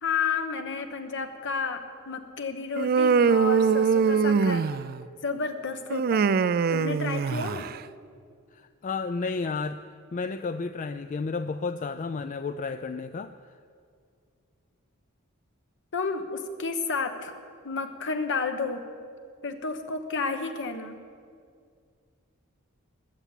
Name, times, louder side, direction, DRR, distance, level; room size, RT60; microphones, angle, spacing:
voice 1, 0.0-4.7 5.2-6.3 6.7-7.7 15.9-17.3 17.6-18.8 19.4-21.0, left 4 dB, 60° left, 7 dB, 1.1 m, -31 dB
Human voice, 2.8-5.0 5.9-7.8, right 5 dB, 45° right, 0.3 m, -23 dB
voice 2, 8.5-9.8 10.1-13.3, left 4 dB, 35° left, 9 dB, 0.4 m, -32 dB
20.0 x 7.0 x 8.3 m, 2.2 s
head